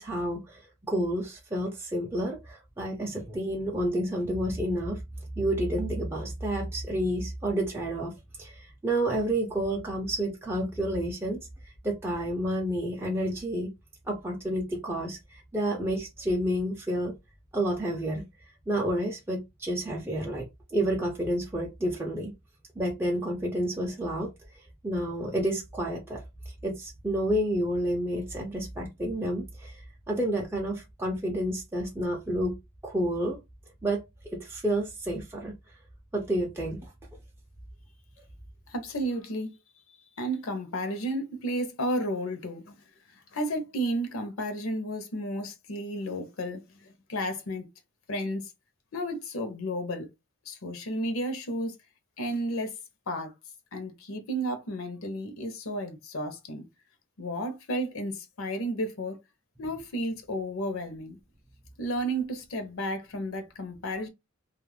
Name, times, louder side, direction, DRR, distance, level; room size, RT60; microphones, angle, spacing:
voice 1, 0.0-5.0 5.4-8.1 8.4-11.4 11.8-13.7 14.1-15.2 15.5-17.1 17.5-18.3 18.7-20.5 20.7-22.3 22.8-24.3 24.8-29.8 30.1-32.6 32.8-33.4 33.8-34.0 34.3-35.5 36.1-36.9, right 1 dB, 10° right, 0.4 m, -30 dB
voice 2, 38.7-39.6 40.2-42.8 43.3-47.6 48.1-48.5 48.9-50.1 50.5-51.7 52.2-52.7 53.1-53.3 53.7-56.7 57.2-59.2 59.6-61.2 61.8-64.1, equal, 75° left, 0.7 m, -32 dB
2.3 x 2.0 x 3.1 m
head